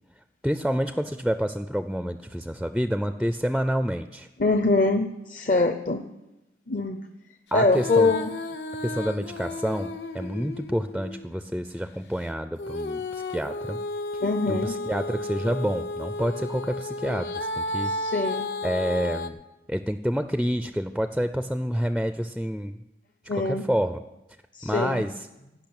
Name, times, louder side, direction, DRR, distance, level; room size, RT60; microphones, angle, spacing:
voice 1, 0.4-4.3 7.5-8.1 8.8-13.8 14.5-17.9 18.6-19.4 19.7-22.8 23.4-24.0 24.6-25.1, equal, ahead, 9 dB, 0.4 m, -28 dB
voice 2, 4.4-6.0 6.7-7.0 7.5-8.3 14.2-14.8 17.8-18.5 23.3-23.7 24.5-25.0, left 3 dB, 45° left, 7 dB, 0.6 m, -23 dB
Female singing, 7.6-11.4 12.6-19.3, left 2 dB, 85° left, 1.0 m, -33 dB
16.5 x 5.9 x 8.8 m, 0.97 s
head